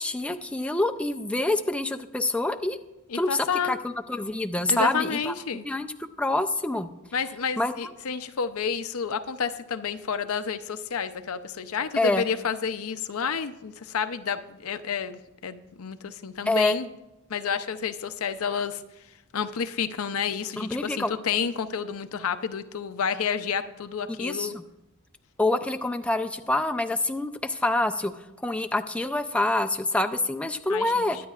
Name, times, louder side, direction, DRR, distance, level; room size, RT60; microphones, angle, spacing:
voice 1, 0.0-2.8 3.1-5.3 5.6-5.9 6.2-6.9 7.6-7.7 12.0-12.3 16.5-16.8 20.6-21.1 24.2-24.6 25.4-28.1 28.4-31.2, left 2 dB, 5° left, 6 dB, 0.4 m, -26 dB
voice 2, 3.1-3.7 4.7-5.6 7.1-16.9 17.3-18.8 19.3-24.5 30.7-31.1, left 6 dB, 85° left, 10 dB, 0.6 m, -30 dB
22.5 x 9.3 x 2.4 m, 0.93 s
head